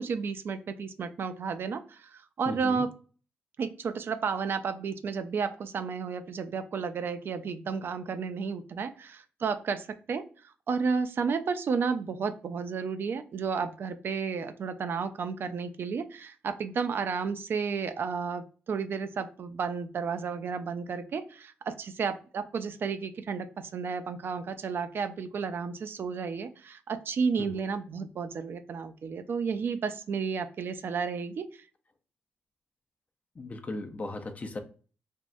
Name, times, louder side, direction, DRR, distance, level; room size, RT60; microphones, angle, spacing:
voice 1, 0.0-2.9 3.6-31.6, right 5 dB, 60° right, 10 dB, 0.3 m, -32 dB
voice 2, 2.5-2.8 27.4-27.6 33.4-34.6, left 2 dB, 35° left, 6 dB, 0.5 m, -37 dB
3.5 x 2.0 x 2.5 m, 0.39 s
cardioid pair, 70°, 4 cm